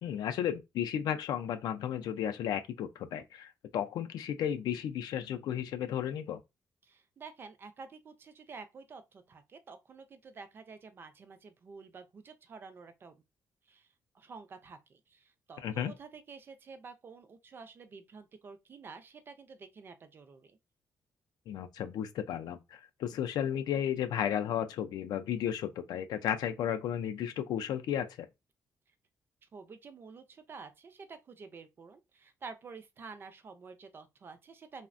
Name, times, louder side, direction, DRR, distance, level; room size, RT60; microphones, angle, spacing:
voice 1, 0.0-6.4 15.6-15.9 21.5-28.2, left 9 dB, 90° left, 0.3 m, -34 dB
voice 2, 6.8-13.2 13.7-13.9 14.1-20.6 29.5-34.9, right 4 dB, 35° right, 0.4 m, -50 dB
3.2 x 2.1 x 2.4 m
wide cardioid pair, 175°, 7 cm